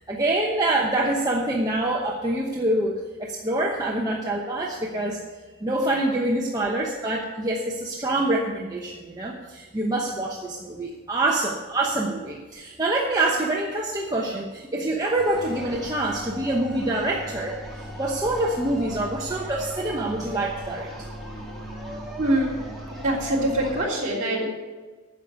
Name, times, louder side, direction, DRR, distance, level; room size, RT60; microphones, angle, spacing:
voice 1, 0.0-5.2 5.6-17.5 18.0-20.9, right 2 dB, 15° right, -2 dB, 1.0 m, -26 dB
sound 1, 15.2-23.8, equal, ahead, 1.9 m, -37 dB
voice 2, 22.2-22.6 22.9-24.5, right 1 dB, 35° right, -4 dB, 3.3 m, -24 dB
9.9 x 6.7 x 8.8 m, 1.3 s
head